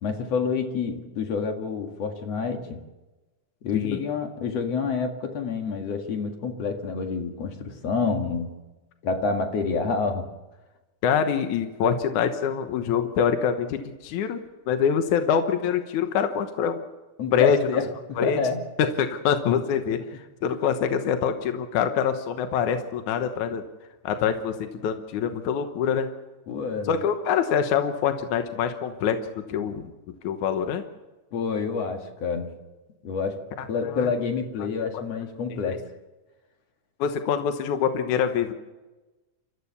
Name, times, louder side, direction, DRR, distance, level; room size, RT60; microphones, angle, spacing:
voice 1, 0.0-2.8 3.6-8.6 9.0-10.3 17.2-18.7 26.5-27.0 31.3-32.6 33.0-33.4 33.7-35.9, left 5 dB, 55° left, 4 dB, 2.9 m, -28 dB
voice 2, 11.0-14.4 14.7-16.8 17.3-17.6 18.2-18.4 18.8-23.6 24.0-24.6 24.8-26.1 26.9-29.2 29.5-29.9 30.2-30.8 33.6-33.7 33.9-34.1 34.9-35.0 35.5-35.8 37.0-38.5, left 7 dB, 75° left, 7 dB, 2.5 m, -25 dB
29.0 x 14.5 x 6.9 m, 1.1 s
omnidirectional pair, 3.5 m